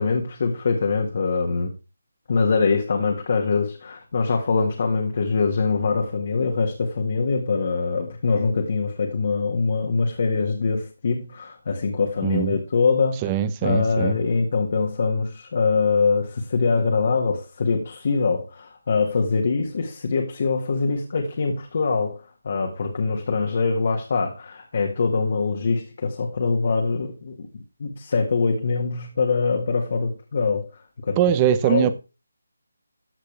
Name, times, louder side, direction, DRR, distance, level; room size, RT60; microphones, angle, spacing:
voice 1, 0.0-1.7 2.3-13.3 13.6-27.4 27.8-30.7 31.0-31.2 31.6-31.9, left 4 dB, 50° left, 1.9 m, -23 dB
voice 2, 12.2-12.6 13.2-14.2 31.2-31.9, right 10 dB, 20° right, 0.8 m, -21 dB
14.0 x 6.7 x 3.4 m
figure-of-eight pair, 160°, 0 cm